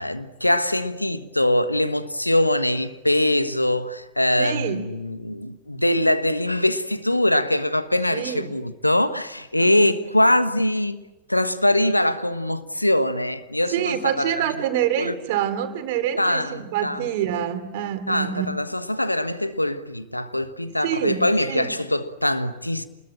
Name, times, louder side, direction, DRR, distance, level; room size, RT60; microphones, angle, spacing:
voice 1, 0.0-11.0 11.3-14.5 15.0-15.1 16.2-17.1 18.1-22.8, left 1 dB, 85° left, 1.3 m, -23 dB
voice 2, 4.4-4.8 8.1-8.5 9.5-9.9 13.7-18.5 20.8-21.2 21.5-21.7, right 10 dB, 50° right, 2.9 m, -26 dB
28.5 x 21.0 x 8.8 m
figure-of-eight pair, 90°, 0 cm